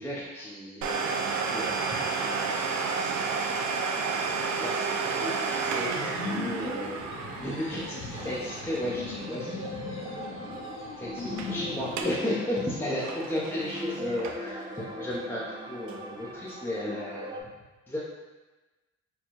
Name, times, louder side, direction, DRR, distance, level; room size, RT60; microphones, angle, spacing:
voice 1, 0.0-3.4 4.5-9.9 11.0-15.4 15.7-17.4 17.9-18.0, left 1 dB, 5° left, -8 dB, 0.7 m, -35 dB
Domestic sounds home sounds, 0.8-10.2 10.5-10.6 11.2-11.5 11.8-12.2 12.6-14.6 15.1-15.2 15.9-16.0, right 4 dB, 70° right, 0.5 m, -31 dB
sound 1, 5.9-12.0, left 4 dB, 45° left, 0.6 m, -39 dB
sound 2, 8.1-17.4, equal, 15° right, 0.3 m, -41 dB
4.4 x 2.3 x 3.0 m, 1.2 s
cardioid pair, 90°, 30 cm